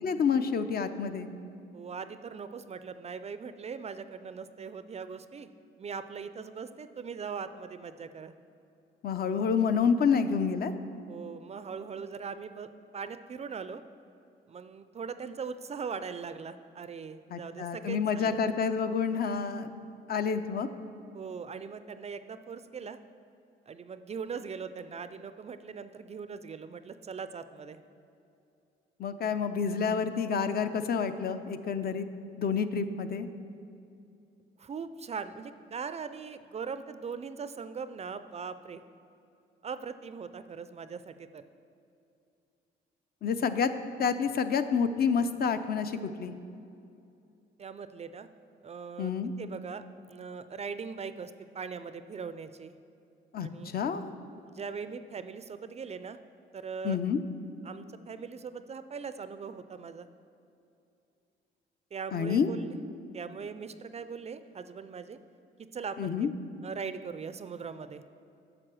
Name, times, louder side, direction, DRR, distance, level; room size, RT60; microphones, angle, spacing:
voice 1, 0.0-1.3 9.0-10.7 17.3-19.7 20.1-20.7 29.0-32.0 32.4-33.3 43.2-43.7 44.0-46.3 49.0-49.3 53.3-54.1 56.8-57.2 62.1-62.5 66.0-66.3, left 6 dB, 50° left, 10 dB, 0.5 m, -28 dB
voice 2, 1.7-5.5 5.8-8.3 11.1-12.7 12.9-13.8 14.5-18.4 21.1-23.0 23.7-27.8 34.6-38.8 39.6-41.4 47.6-48.3 48.6-49.1 49.4-52.8 53.4-53.7 54.5-56.2 56.5-57.0 57.6-60.1 61.9-62.8 63.1-65.2 65.7-66.3 66.6-68.0, right 6 dB, 35° right, 12 dB, 0.4 m, -40 dB
7.7 x 5.9 x 6.2 m, 2.6 s
cardioid pair, 90°, 20 cm